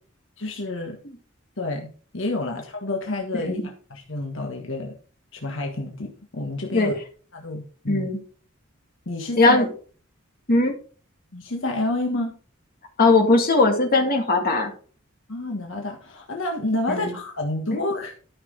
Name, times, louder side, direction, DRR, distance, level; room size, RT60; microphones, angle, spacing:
voice 1, 0.4-1.0 1.6-4.9 5.3-7.0 7.3-8.1 9.1-9.6 11.3-12.3 15.3-18.1, left 2 dB, 65° left, 1 dB, 1.5 m, -29 dB
voice 2, 7.9-8.2 9.4-9.7 10.5-10.7 13.0-14.7 16.9-17.1, left 2 dB, 45° left, 3 dB, 2.3 m, -19 dB
13.0 x 5.9 x 4.0 m, 0.41 s
head